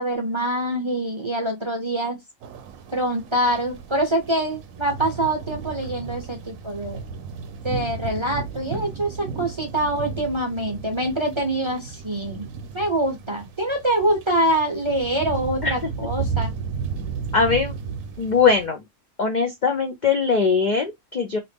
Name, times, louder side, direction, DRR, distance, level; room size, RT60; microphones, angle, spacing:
voice 1, 0.0-2.2 2.9-7.0 7.6-12.5 12.7-16.5, right 1 dB, 30° right, 0.6 m, -25 dB
sound 1, 2.4-18.7, right 5 dB, 75° right, 1.0 m, -34 dB
voice 2, 17.3-17.7 18.2-18.8 19.2-21.4, left 5 dB, 60° left, 0.4 m, -21 dB
2.8 x 2.5 x 3.4 m
omnidirectional pair, 1.5 m